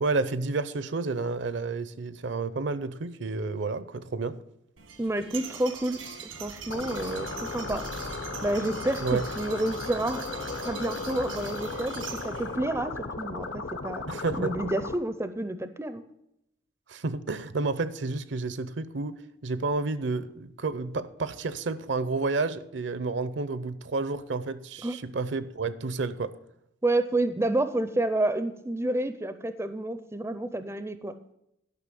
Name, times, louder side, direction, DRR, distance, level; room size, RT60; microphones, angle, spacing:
voice 1, 0.0-4.4 9.0-9.2 14.1-14.5 16.9-26.3, right 3 dB, 65° right, 0.6 m, -30 dB
sound 1, 4.8-12.6, right 5 dB, 90° right, 1.6 m, -42 dB
voice 2, 5.0-7.9 8.4-10.2 10.6-14.0 14.4-16.0 24.8-25.0 26.8-31.2, right 1 dB, 15° right, 0.4 m, -29 dB
sound 2, 6.7-15.0, left 3 dB, 65° left, 0.9 m, -36 dB
sound 3, 10.2-13.8, left 3 dB, 40° left, 0.6 m, -43 dB
12.0 x 5.7 x 7.5 m
head